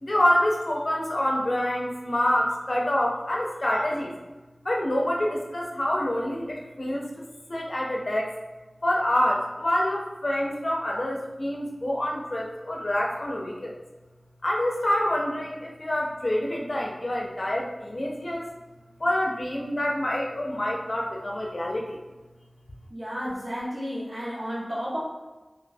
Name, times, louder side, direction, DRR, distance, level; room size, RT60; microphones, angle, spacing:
voice 1, 0.0-4.2 4.6-7.2 7.5-8.3 8.8-13.7 14.4-18.5 19.0-22.0, left 1 dB, 60° left, -1 dB, 0.6 m, -27 dB
voice 2, 22.9-25.0, equal, 60° right, -8 dB, 1.2 m, -32 dB
3.0 x 2.6 x 2.7 m, 1.1 s
wide cardioid pair, 40°, 0 cm